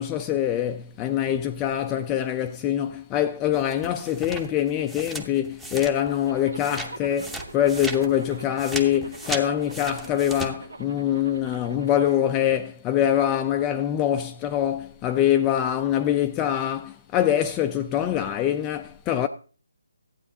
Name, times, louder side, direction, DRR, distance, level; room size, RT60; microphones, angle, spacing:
voice 1, 0.0-19.3, left 10 dB, 15° left, 0.4 m, -24 dB
sound 1, 3.5-6.3 6.6-10.5, right 2 dB, 5° right, 0.7 m, -36 dB
Zipper (clothing), 6.3-12.2, right 3 dB, 80° right, 1.7 m, -42 dB
14.0 x 8.9 x 2.7 m
hypercardioid pair, 160°, 0 cm